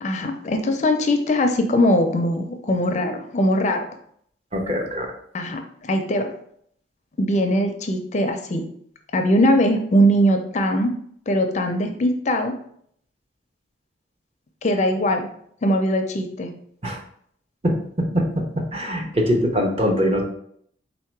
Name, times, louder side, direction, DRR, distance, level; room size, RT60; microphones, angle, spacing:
voice 1, 0.0-3.9 5.3-6.3 7.2-8.6 9.1-10.9 11.3-12.5 14.6-15.3 15.6-16.5, equal, 40° left, 5 dB, 0.4 m, -21 dB
voice 2, 4.5-5.1 16.8-17.0 17.6-20.2, equal, 30° right, 2 dB, 0.7 m, -23 dB
4.0 x 2.8 x 4.5 m, 0.65 s
head